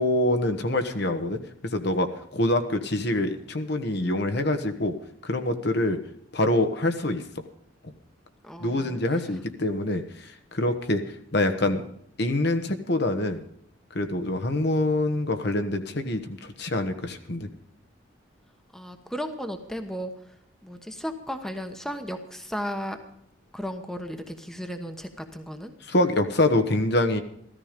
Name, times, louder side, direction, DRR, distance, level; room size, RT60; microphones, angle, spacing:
voice 1, 0.0-1.4 1.7-4.9 5.2-6.0 6.3-7.4 8.6-11.0 11.3-11.8 12.2-13.4 13.9-17.5 25.9-27.2, left 1 dB, 60° left, 7 dB, 1.4 m, -25 dB
voice 2, 8.4-9.0 18.7-20.4 20.6-23.0 23.5-25.7, equal, 5° left, 7 dB, 1.1 m, -35 dB
15.0 x 14.0 x 5.2 m, 0.69 s
head